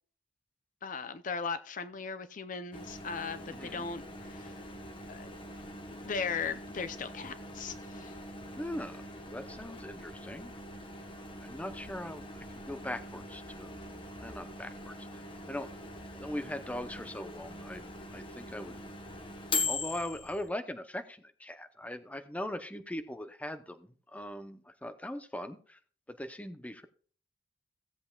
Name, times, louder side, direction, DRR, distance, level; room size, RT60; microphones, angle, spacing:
voice 1, 0.8-4.6 5.1-5.3 6.0-8.1, left 5 dB, 45° left, 11 dB, 0.5 m, -38 dB
Microwave oven, 2.7-20.5, left 2 dB, 25° left, 1.2 m, -42 dB
voice 2, 3.5-3.9 8.6-9.0 9.3-10.5 11.4-13.7 14.2-15.2 15.5-15.7 16.2-18.8 19.6-25.8 26.1-26.9, left 1 dB, 10° left, 9 dB, 0.7 m, -40 dB
16.5 x 7.7 x 2.3 m, 0.44 s
head